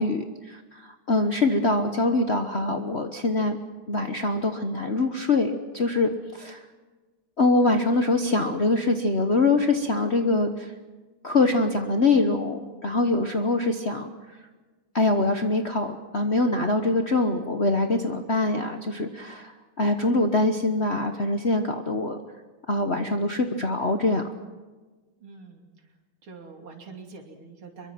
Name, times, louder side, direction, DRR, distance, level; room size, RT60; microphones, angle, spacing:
voice 1, 0.0-3.6 3.9-6.6 7.4-10.7 11.2-14.1 14.9-22.2 22.7-24.3, left 2 dB, 40° left, 5 dB, 1.2 m, -24 dB
voice 2, 25.2-25.7 26.2-27.9, right 4 dB, 85° right, 2 dB, 3.6 m, -44 dB
25.0 x 23.0 x 5.9 m, 1.3 s
omnidirectional pair, 2.3 m